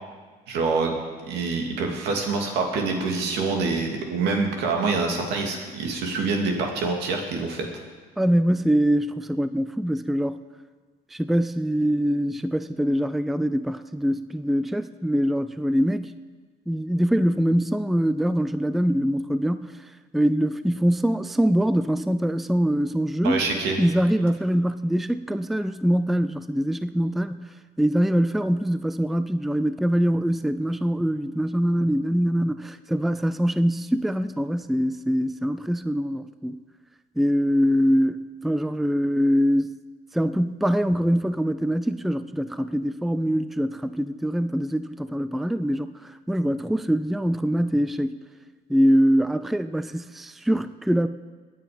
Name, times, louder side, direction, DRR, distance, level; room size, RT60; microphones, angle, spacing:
voice 1, 0.5-0.9 1.3-7.7 23.2-23.8, right 4 dB, 85° right, 2 dB, 2.6 m, -26 dB
voice 2, 8.2-10.4 11.1-16.1 16.7-23.4 23.8-27.5 27.8-36.6 37.2-39.8 40.1-48.2 48.7-51.1, equal, ahead, 13 dB, 0.4 m, -23 dB
22.5 x 9.4 x 5.2 m, 1.5 s
cardioid pair, 110°, 17 cm